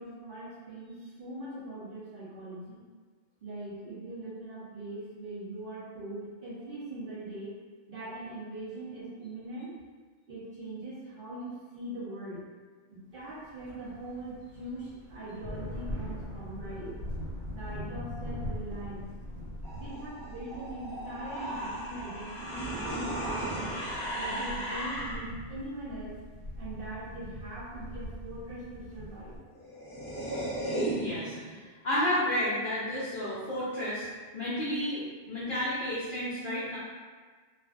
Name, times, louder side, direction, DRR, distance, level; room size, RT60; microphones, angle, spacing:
voice 1, 0.0-2.9 3.4-7.6 7.9-9.7 10.3-12.4 12.9-16.9 17.5-19.1 19.7-23.8 24.1-26.2 26.6-29.3, right 1 dB, 55° right, -11 dB, 0.8 m, -41 dB
sound 1, 13.4-29.4, left 1 dB, 80° right, 1.2 m, -42 dB
sound 2, 19.6-25.4 29.3-29.4 29.5-31.6, right 1 dB, 5° left, 0.7 m, -35 dB
voice 2, 30.9-34.1 34.3-36.8, left 1 dB, 55° left, -10 dB, 0.6 m, -31 dB
2.5 x 2.3 x 2.3 m, 1.5 s
omnidirectional pair, 1.2 m